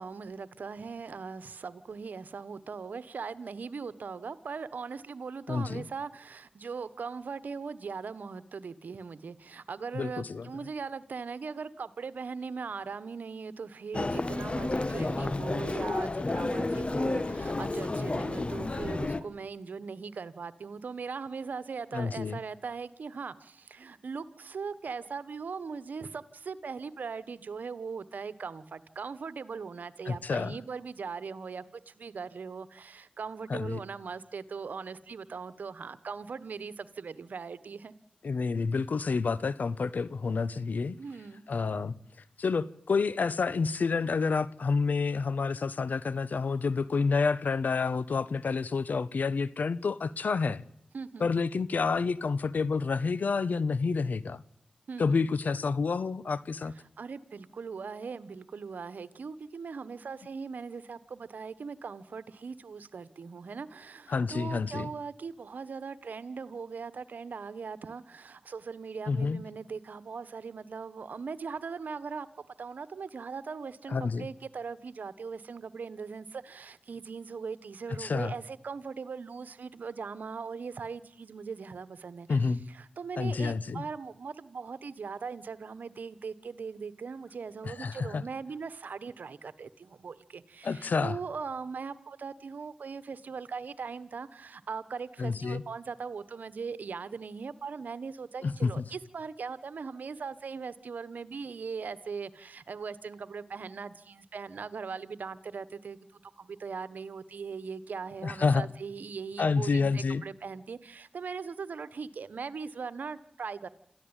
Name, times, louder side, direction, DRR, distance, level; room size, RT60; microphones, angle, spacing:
voice 1, 0.0-37.9 41.0-41.4 50.9-51.3 54.9-55.2 57.0-72.3 72.6-82.4 82.7-106.0 106.4-113.7, right 5 dB, 75° right, 1.3 m, -40 dB
voice 2, 5.5-5.9 9.9-10.5 21.9-22.4 30.1-30.5 33.5-33.8 38.2-41.0 41.5-41.9 42.4-50.6 51.2-54.4 55.0-56.7 64.1-64.9 69.1-69.4 73.9-74.3 78.0-78.3 82.3-82.6 83.2-83.8 87.6-88.2 90.6-91.2 95.2-95.6 98.4-98.8 108.2-108.7 109.4-110.2, left 4 dB, 75° left, 1.0 m, -29 dB
Human voice, 13.9-19.2, left 2 dB, 40° left, 1.7 m, -31 dB
27.5 x 14.5 x 9.0 m
cardioid pair, 40°, 3 cm